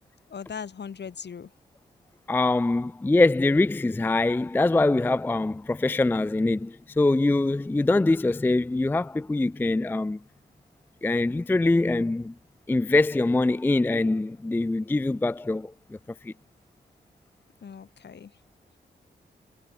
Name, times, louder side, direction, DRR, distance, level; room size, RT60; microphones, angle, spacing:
voice 1, 0.3-1.5 17.6-18.4, left 7 dB, 70° left, 6.6 m, -39 dB
voice 2, 2.3-10.2 11.0-12.3 12.7-16.0 16.2-16.3, left 2 dB, 10° left, 0.4 m, -23 dB
wide cardioid pair, 95°, 18 cm